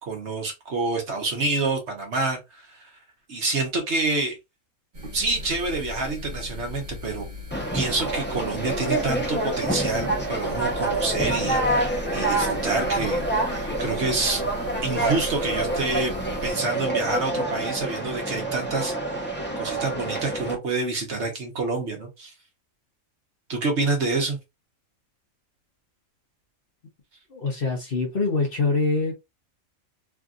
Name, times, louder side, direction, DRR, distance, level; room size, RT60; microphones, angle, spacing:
voice 1, 0.0-2.9 3.3-4.4 5.1-7.3 7.7-14.4 14.8-16.1 16.4-22.3 23.5-24.4, right 3 dB, 55° right, 1.3 m, -27 dB
sound 1, 4.9-16.5, left 2 dB, 35° right, 1.1 m, -38 dB
Conversation, 7.5-20.6, right 2 dB, 10° left, 0.7 m, -27 dB
voice 2, 27.3-29.1, left 3 dB, 45° left, 1.0 m, -24 dB
3.4 x 2.6 x 2.4 m
omnidirectional pair, 1.5 m